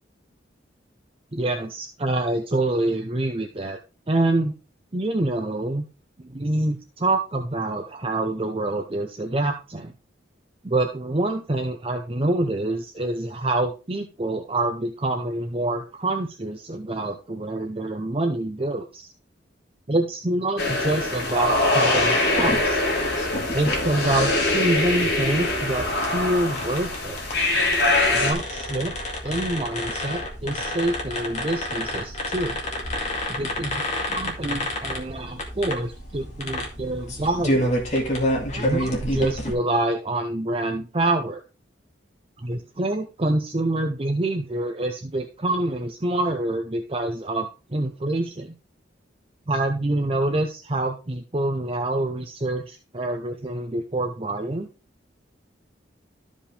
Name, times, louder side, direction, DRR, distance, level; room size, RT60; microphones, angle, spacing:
voice 1, 1.3-3.8 4.1-4.5 4.9-5.9 6.2-9.9 10.6-19.1 19.9-22.8 23.5-27.2 28.1-32.6 33.3-33.8 34.1-37.7 38.6-41.4 42.4-48.5 49.5-54.7, right 2 dB, 30° right, 4 dB, 0.7 m, -26 dB
sound 1, 20.6-28.3, left 2 dB, 60° left, 2.8 m, -23 dB
Squeaky Chair Long lean, 22.3-39.5, left 1 dB, 40° left, 2.2 m, -30 dB
13.0 x 5.2 x 3.4 m, 0.31 s
head